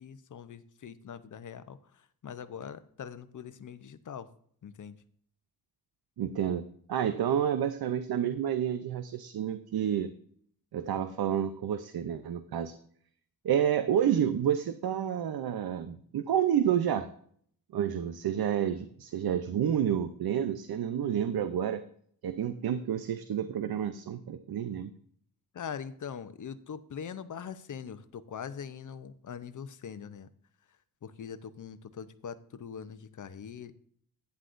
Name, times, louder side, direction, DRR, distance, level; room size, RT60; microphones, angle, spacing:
voice 1, 0.0-4.3 4.6-5.0 25.5-30.3 31.0-33.7, left 7 dB, 55° left, 13 dB, 0.7 m, -42 dB
voice 2, 6.2-6.6 6.9-10.1 10.7-12.7 13.4-17.1 17.7-21.8 22.2-24.9, right 9 dB, 80° right, 11 dB, 0.6 m, -29 dB
11.5 x 9.7 x 2.5 m, 0.62 s
wide cardioid pair, 145°, 37 cm